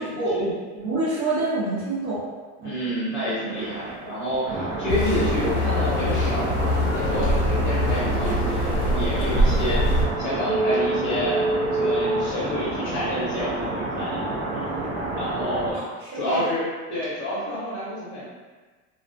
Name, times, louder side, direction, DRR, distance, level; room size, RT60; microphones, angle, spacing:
voice 1, 0.0-2.2 2.6-2.7 15.7-16.5, right 2 dB, 30° right, -12 dB, 0.6 m, -27 dB
voice 2, 2.6-11.5 11.7-15.8 16.1-18.2, equal, 15° left, -9 dB, 0.6 m, -29 dB
sound 1, 3.6-15.7, right 2 dB, 85° right, 0.7 m, -28 dB
sound 2, 4.9-10.1, left 1 dB, 65° left, 0.5 m, -23 dB
2.3 x 2.1 x 2.5 m, 1.3 s
cardioid pair, 160°, 36 cm